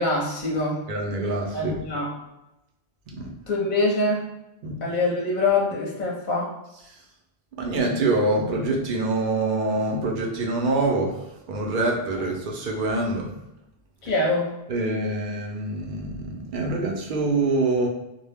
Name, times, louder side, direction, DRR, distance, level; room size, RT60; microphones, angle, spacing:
voice 1, 0.0-0.8 1.5-2.1 3.5-4.3 4.8-6.5 14.0-14.5, left 2 dB, 50° left, -3 dB, 0.7 m, -24 dB
voice 2, 0.9-1.8 3.1-3.3 4.6-4.8 7.6-13.3 14.7-17.9, right 2 dB, 60° right, 0 dB, 0.6 m, -25 dB
2.1 x 2.0 x 3.3 m, 0.91 s
omnidirectional pair, 1.1 m